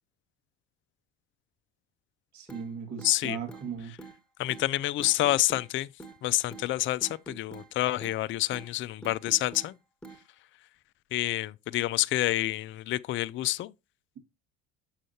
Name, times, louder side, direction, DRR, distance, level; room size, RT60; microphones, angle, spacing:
voice 1, 2.3-3.9, right 6 dB, 55° right, 2.1 m, -37 dB
sound 1, 2.5-2.6 3.0-3.7 4.0-4.2 4.5-4.7 5.0-5.7 6.0-6.2 6.5-6.7 7.0-7.7 8.0-8.2 8.5-8.7 9.0-9.7 10.0-10.2, right 3 dB, 5° left, 1.3 m, -45 dB
voice 2, 3.0-3.4 4.4-5.9 6.2-9.8 11.1-13.7, left 15 dB, 35° left, 0.4 m, -28 dB
6.4 x 6.3 x 2.7 m
hypercardioid pair, 75°, 33 cm